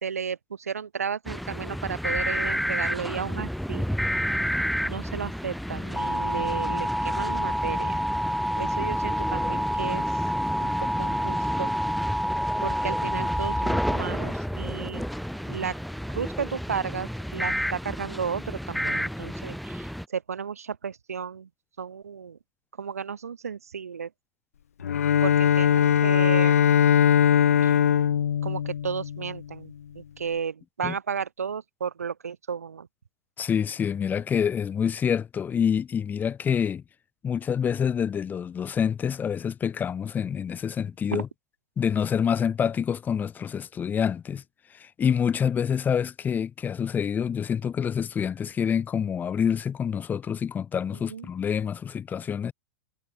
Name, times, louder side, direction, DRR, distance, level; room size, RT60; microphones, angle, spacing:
voice 1, 0.0-3.9 4.8-8.0 8.6-10.0 10.6-10.7 11.0-11.7 12.6-15.0 15.5-15.8 16.1-21.5 21.8-22.4 22.8-24.1 25.2-26.7 27.6-27.8 28.4-32.9 41.1-41.2 51.1-51.3, right 6 dB, 85° right, 1.6 m, -33 dB
sound 1, 1.3-20.0, equal, ahead, 0.5 m, -28 dB
Bowed string instrument, 24.8-29.4, left 9 dB, 80° left, 0.5 m, -21 dB
voice 2, 33.4-36.8 37.2-41.3 41.8-44.4 44.7-52.5, left 7 dB, 20° left, 1.8 m, -27 dB
hypercardioid pair, 105°, 8 cm